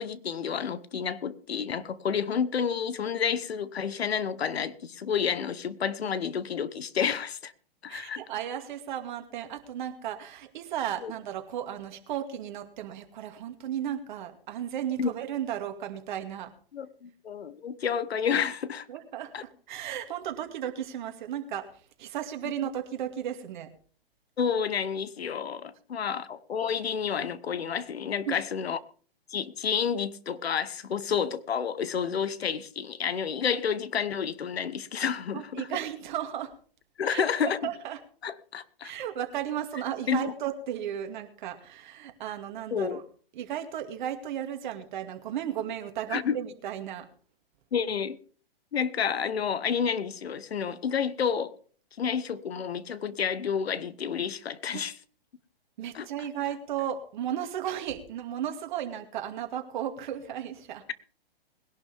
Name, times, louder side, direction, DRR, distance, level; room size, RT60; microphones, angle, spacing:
voice 1, 0.0-7.5 7.8-8.2 11.0-11.1 15.0-15.1 16.7-18.9 19.3-19.4 24.4-28.8 29.3-35.7 37.0-37.7 38.2-38.9 40.1-40.3 42.7-43.0 46.1-46.4 47.7-48.2 48.7-51.5 52.0-54.9 55.9-56.1, left 7 dB, 85° left, 1.2 m, -30 dB
voice 2, 7.9-16.5 18.9-21.7 22.0-23.7 28.3-28.4 35.3-36.5 37.0-38.0 38.8-43.0 43.3-47.1 55.8-60.8, right 10 dB, 50° right, 2.4 m, -34 dB
21.0 x 11.5 x 3.6 m
hypercardioid pair, 140°, 31 cm